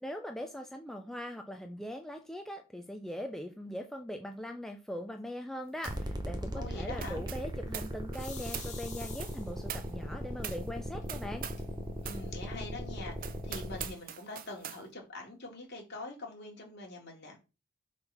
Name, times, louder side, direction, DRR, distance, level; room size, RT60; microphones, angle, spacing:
voice 1, 0.0-11.5, equal, ahead, 0.5 m, -41 dB
sound 1, 5.8-6.1 6.4-11.7 12.0-12.3 12.7-12.8 13.2-14.8, right 10 dB, 45° right, 0.6 m, -44 dB
sound 2, 5.9-13.9, equal, 20° right, 1.1 m, -39 dB
voice 2, 6.5-7.3 12.0-17.4, left 2 dB, 55° left, 2.7 m, -44 dB
sound 3, 8.1-9.7 10.5-10.6 11.0-11.1 11.4-12.0, left 5 dB, 35° left, 2.2 m, -47 dB
5.1 x 4.5 x 5.7 m
head